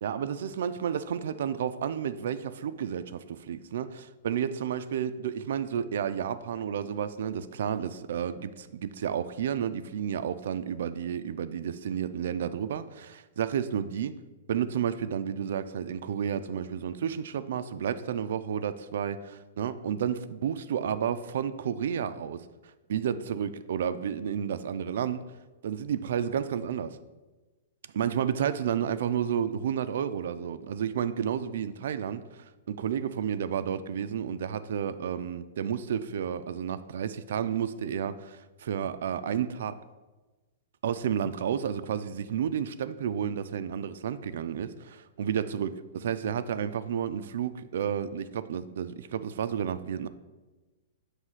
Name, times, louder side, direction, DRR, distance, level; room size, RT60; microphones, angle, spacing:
voice 1, 0.0-14.2 14.5-25.2 25.6-27.0 27.9-39.8 40.8-50.1, right 8 dB, 70° right, 13 dB, 0.3 m, -31 dB
6.3 x 2.7 x 5.6 m, 1.2 s
hypercardioid pair, 150°, 0 cm